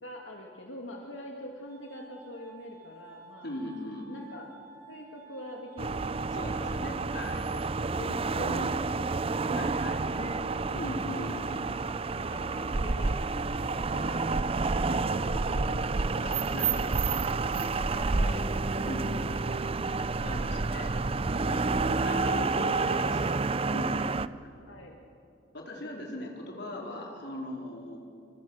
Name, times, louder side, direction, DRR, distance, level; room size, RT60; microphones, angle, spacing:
voice 1, 0.0-3.5 4.1-4.5 4.9-6.7 7.9-10.9 11.3-11.6 12.1-13.2 13.7-16.3 17.9-19.7 21.9-23.3 24.7-25.0, left 1 dB, 85° left, 0 dB, 2.2 m, -44 dB
Glass, 1.6-13.6, right 4 dB, 50° right, 6.2 m, -52 dB
voice 2, 3.4-4.1 6.3-7.5 9.5-10.0 10.7-11.7 16.2-17.9 18.2-18.3 18.8-19.1 20.2-21.0 21.4-23.4 23.7-24.0 25.5-28.0, left 1 dB, 60° left, 0 dB, 4.4 m, -40 dB
sound 1, 5.8-24.3, right 3 dB, 30° right, 0.5 m, -29 dB
27.0 x 25.0 x 6.5 m, 2.6 s
head